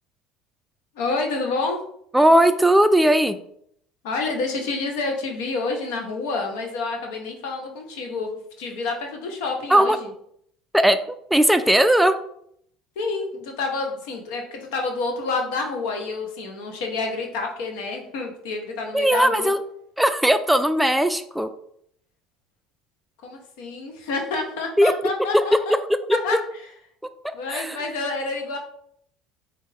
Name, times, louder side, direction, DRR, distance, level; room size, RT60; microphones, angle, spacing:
voice 1, 1.0-1.8 4.0-10.1 13.0-19.5 23.2-25.7 26.1-26.4 27.3-28.6, left 3 dB, 85° left, 3 dB, 0.7 m, -28 dB
voice 2, 2.1-3.4 9.7-10.0 10.7-11.0 11.3-12.2 18.9-19.6 20.0-21.5 24.8-24.9 25.3-25.4 27.5-27.8, right 1 dB, 5° right, 9 dB, 0.3 m, -18 dB
4.5 x 2.4 x 3.2 m, 0.69 s
supercardioid pair, 105°, 0 cm